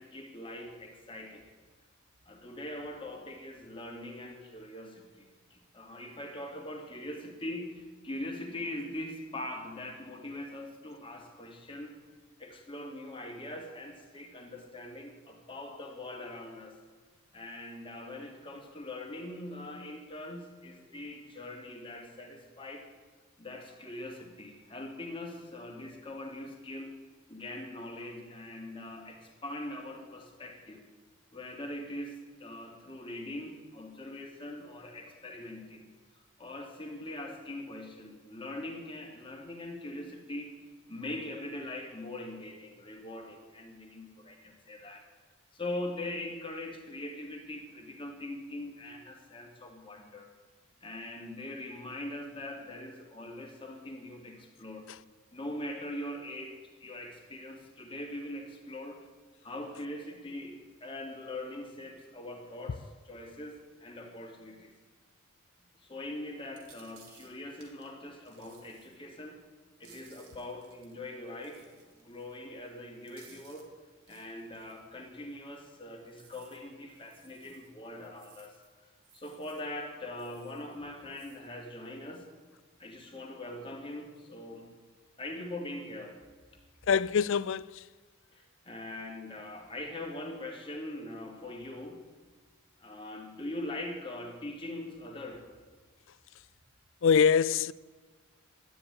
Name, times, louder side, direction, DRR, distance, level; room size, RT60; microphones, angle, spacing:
voice 1, 0.0-1.5 2.3-12.0 12.4-16.8 17.3-22.9 23.4-27.0 27.3-30.8 31.3-35.8 36.4-40.6 40.9-45.1 45.5-50.3 50.8-54.9 55.3-59.0 59.4-64.7 65.8-69.4 69.8-73.7 74.1-78.5 79.1-82.3 82.8-84.7 85.2-86.2 88.3-92.0 92.8-95.4, left 1 dB, 25° left, 2.3 m, -42 dB
sound 1, 66.5-67.9 68.2-69.0 69.7-70.9 71.4-72.4 72.6-72.7 73.0-73.7 74.1-74.7 76.0-78.7 79.0-79.7 80.2-80.8 81.0-81.5, right 6 dB, 90° right, 2.7 m, -60 dB
voice 2, 86.9-87.9 97.0-97.7, left 6 dB, 60° left, 0.4 m, -24 dB
12.5 x 10.0 x 9.9 m
head